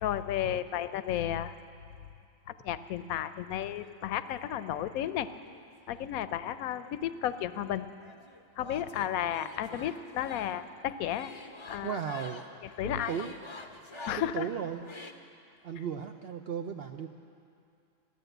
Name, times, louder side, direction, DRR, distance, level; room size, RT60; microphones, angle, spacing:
voice 1, 0.0-1.6 2.5-5.3 5.9-7.9 8.6-11.3 11.6-12.0 12.8-13.1 14.1-14.5, left 11 dB, 80° left, 13 dB, 1.0 m, -33 dB
sound 1, 3.6-4.5 5.3-6.5 6.7-15.1, left 3 dB, 35° left, 0.5 m, -48 dB
voice 2, 11.8-12.4 12.8-13.3 14.2-14.9 15.6-17.1, right 8 dB, 65° right, 5 dB, 0.6 m, -36 dB
14.0 x 11.0 x 7.9 m, 2.6 s
omnidirectional pair, 1.5 m